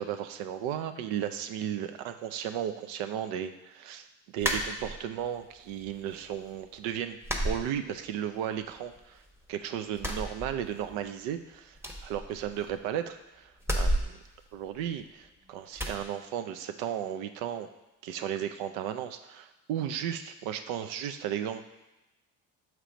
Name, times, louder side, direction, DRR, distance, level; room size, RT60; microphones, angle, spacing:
voice 1, 0.0-4.1 4.3-7.2 7.4-9.2 9.5-11.8 12.0-14.2 14.5-17.7 18.0-21.6, right 10 dB, 85° right, 9 dB, 0.6 m, -35 dB
sound 1, 4.4-5.3 5.7-6.4 6.6-6.8 7.2-8.4 8.7-9.5 9.9-11.1 11.3-11.4 11.7-12.9 13.6-15.2 15.7-16.0, equal, 5° right, 0.9 m, -33 dB
6.7 x 3.2 x 5.0 m, 1.0 s
supercardioid pair, 80°, 44 cm